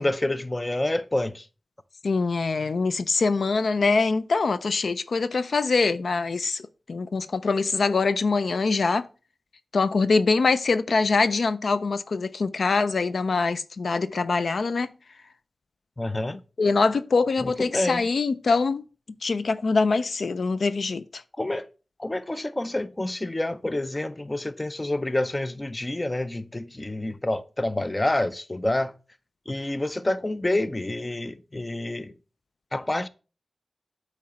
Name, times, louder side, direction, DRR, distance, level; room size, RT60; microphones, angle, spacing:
voice 1, 0.0-1.5 16.0-16.4 17.4-18.0 21.4-21.7 22.0-28.9 29.5-32.1 32.7-33.1, left 1 dB, 25° left, 0.5 m, -28 dB
voice 2, 2.0-9.1 9.7-14.9 16.6-18.8 19.2-21.2 29.5-29.6, left 4 dB, 80° left, 0.4 m, -24 dB
8.7 x 3.2 x 5.7 m
wide cardioid pair, 75°, 0 cm